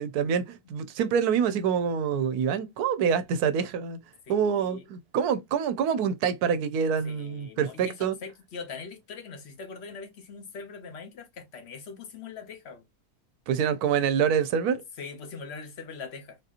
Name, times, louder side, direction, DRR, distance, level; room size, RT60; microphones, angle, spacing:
voice 1, 0.0-4.0 4.3-8.1 13.5-14.8, right 7 dB, 85° right, 1.1 m, -26 dB
voice 2, 4.3-4.9 7.0-12.8 15.0-16.4, left 5 dB, 50° left, 1.0 m, -42 dB
3.9 x 2.7 x 2.4 m
omnidirectional pair, 1.6 m